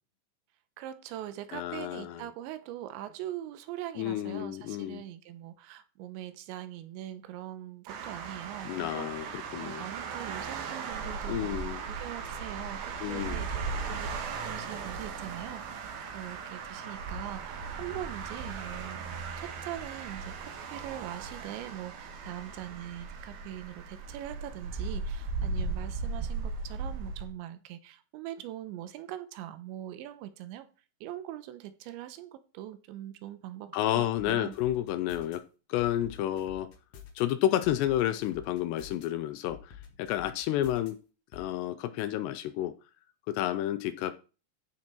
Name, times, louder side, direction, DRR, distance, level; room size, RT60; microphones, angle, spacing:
voice 1, 0.8-14.1 14.4-30.7 31.0-34.6, right 13 dB, 85° right, 3.1 m, -42 dB
voice 2, 1.5-2.2 4.0-5.0 8.7-9.3 9.5-9.9 11.3-11.8 13.0-13.4 33.7-35.4 35.7-36.7 37.2-39.7 40.0-41.0 41.3-42.7 43.3-44.1, left 12 dB, 80° left, 2.6 m, -30 dB
sound 1, 7.9-27.3, right 4 dB, 65° right, 3.0 m, -37 dB
sound 2, 34.2-35.4 35.8-37.2 37.6-39.0 39.5-40.9 41.3-41.5, left 8 dB, 50° left, 2.1 m, -48 dB
14.5 x 6.2 x 4.4 m
omnidirectional pair, 5.3 m